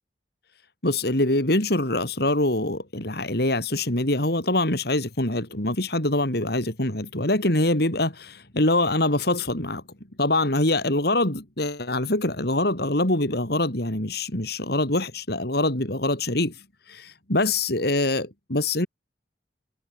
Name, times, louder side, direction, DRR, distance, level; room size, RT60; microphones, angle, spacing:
voice 1, 0.8-9.8 10.2-16.6 16.9-18.9, left 2 dB, 60° left, 4.7 m, -24 dB
head